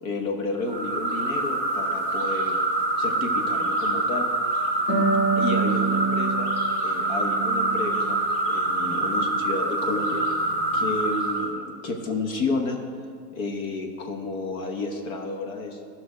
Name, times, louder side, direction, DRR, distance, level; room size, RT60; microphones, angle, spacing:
voice 1, 0.0-2.6 3.0-4.3 5.4-6.5 6.8-8.2 8.5-10.2 10.7-12.8 13.3-15.8, left 3 dB, 55° left, 3 dB, 1.2 m, -31 dB
sound 1, 0.7-11.5, right 2 dB, 20° left, 0.7 m, -26 dB
Harp, 4.9-8.3 8.6-9.7, right 4 dB, 35° left, 1.9 m, -28 dB
13.5 x 6.0 x 5.0 m, 2.2 s
supercardioid pair, 180°, 48 cm